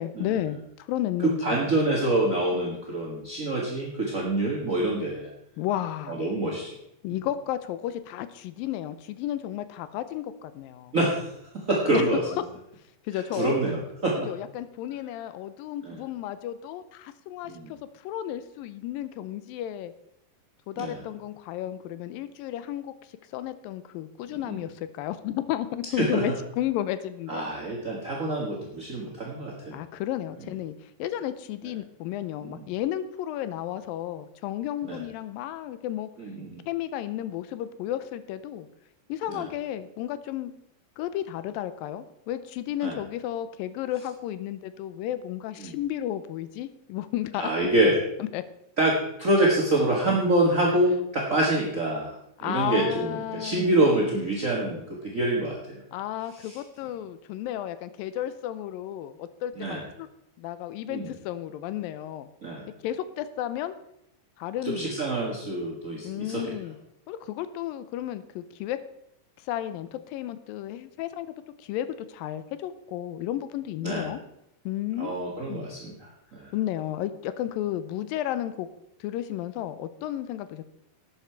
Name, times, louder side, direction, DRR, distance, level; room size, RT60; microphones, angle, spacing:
voice 1, 0.0-1.6 5.6-6.2 7.0-10.9 11.9-12.0 13.0-13.6 14.3-17.8 18.0-19.9 20.7-22.9 23.3-27.5 29.7-36.1 36.7-38.7 39.1-40.5 41.0-47.5 48.2-48.4 52.4-53.8 55.9-60.1 60.4-62.3 62.8-63.8 64.4-65.0 66.0-66.8 67.1-68.8 69.5-71.3 71.6-74.2 74.7-75.7 76.5-78.7 79.0-80.6, left 12 dB, 90° left, 13 dB, 2.4 m, -33 dB
voice 2, 1.2-5.3 6.1-6.7 10.9-12.4 13.1-14.3 15.8-16.0 17.5-17.7 20.8-21.0 24.4-24.6 26.0-26.2 27.3-29.8 32.5-32.6 34.8-35.0 36.2-36.6 39.3-39.4 42.8-43.0 45.6-45.7 47.4-48.0 48.8-52.1 52.4-55.8 56.4-56.6 59.6-59.8 60.9-61.1 62.4-62.7 64.6-66.5 73.8-74.1 75.0-76.5, right 1 dB, 40° right, -2 dB, 1.2 m, -26 dB
12.5 x 9.5 x 4.6 m, 0.79 s
omnidirectional pair, 4.1 m